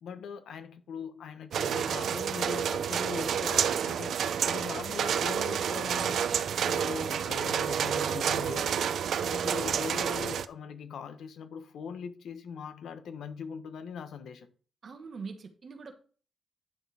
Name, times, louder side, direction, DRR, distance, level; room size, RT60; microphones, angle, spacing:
voice 1, 0.0-6.2 6.5-8.9 9.2-14.5, left 6 dB, 80° left, 1.1 m, -41 dB
sound 1, 1.5-10.5, right 8 dB, 70° right, 0.5 m, -29 dB
voice 2, 14.8-15.9, right 5 dB, 45° right, 1.3 m, -42 dB
9.8 x 6.4 x 3.5 m
wide cardioid pair, 145°, 0 cm